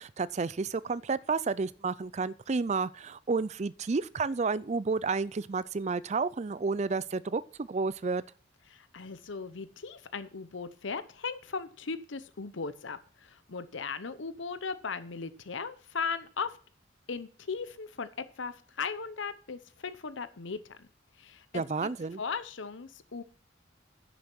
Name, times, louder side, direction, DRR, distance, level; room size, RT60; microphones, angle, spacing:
voice 1, 0.0-8.2 21.5-22.2, right 4 dB, 35° right, 0.4 m, -31 dB
voice 2, 8.7-16.6 17.1-18.1 18.4-20.9 21.2-21.9 22.2-23.2, left 5 dB, 75° left, 0.8 m, -37 dB
10.0 x 7.1 x 6.0 m
head